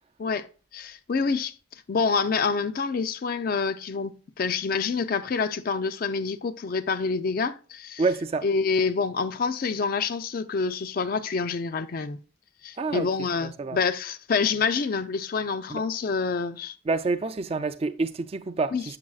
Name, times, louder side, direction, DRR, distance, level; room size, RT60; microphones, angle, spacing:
voice 1, 0.7-8.0 8.4-12.2 12.6-16.8 18.7-18.8, left 5 dB, 45° left, 0.4 m, -27 dB
voice 2, 8.0-8.5 12.8-13.1 13.4-13.8 15.7-15.8 16.9-19.0, right 3 dB, 30° right, 0.3 m, -28 dB
7.4 x 6.3 x 2.3 m
head